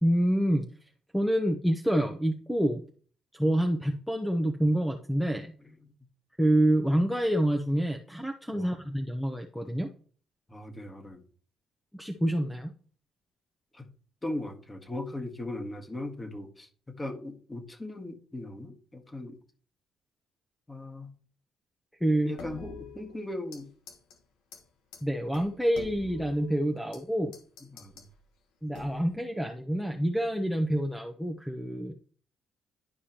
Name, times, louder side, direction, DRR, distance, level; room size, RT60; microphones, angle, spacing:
voice 1, 0.0-0.6 1.1-2.8 3.3-5.5 6.4-9.9 11.9-12.7 22.0-22.3 25.0-27.3 28.6-31.9, right 1 dB, 5° left, 4 dB, 0.9 m, -27 dB
voice 2, 10.5-11.2 13.7-13.9 14.2-19.4 20.7-21.1 22.3-23.7 27.7-28.1, left 1 dB, 20° left, 5 dB, 1.6 m, -38 dB
sound 1, 22.4-23.6 23.9-24.2 24.5-24.6 24.9-25.0 25.3-27.0 27.3-28.1 28.7-29.2, left 4 dB, 80° left, 1.3 m, -46 dB
11.5 x 4.9 x 2.9 m, 0.44 s
supercardioid pair, 60°, 0 cm